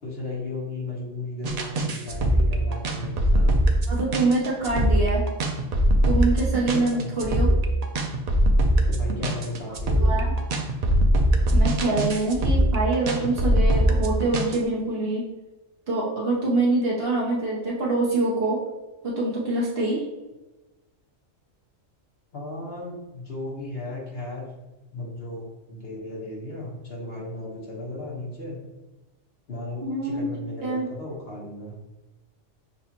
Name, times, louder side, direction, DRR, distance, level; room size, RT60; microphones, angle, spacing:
voice 1, 0.0-3.6 6.9-7.1 8.9-10.1 22.3-24.5 24.9-28.6 29.5-31.9, left 2 dB, 55° left, -4 dB, 1.3 m, -35 dB
sound 1, 1.4-14.6, right 1 dB, 70° right, 0.3 m, -21 dB
voice 2, 3.9-5.2 6.0-7.5 10.0-10.3 11.5-15.2 15.9-18.6 19.0-20.0 29.8-30.2 30.6-30.9, right 2 dB, 55° right, -5 dB, 1.2 m, -25 dB
6.7 x 2.4 x 2.8 m, 1.1 s
omnidirectional pair, 1.3 m